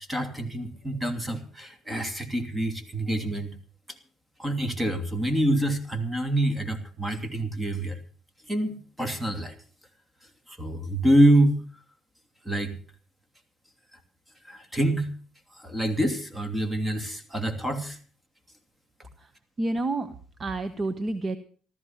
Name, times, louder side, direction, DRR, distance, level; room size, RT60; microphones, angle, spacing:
voice 1, 0.1-3.5 4.4-8.0 8.5-9.5 10.5-11.6 12.4-12.7 13.9-14.0 14.4-15.1 15.5-18.0, right 1 dB, 10° right, 7 dB, 2.7 m, -26 dB
voice 2, 19.6-21.4, right 2 dB, 30° right, 11 dB, 1.0 m, -29 dB
14.5 x 13.5 x 5.7 m, 0.42 s
cardioid pair, 100°, 0 cm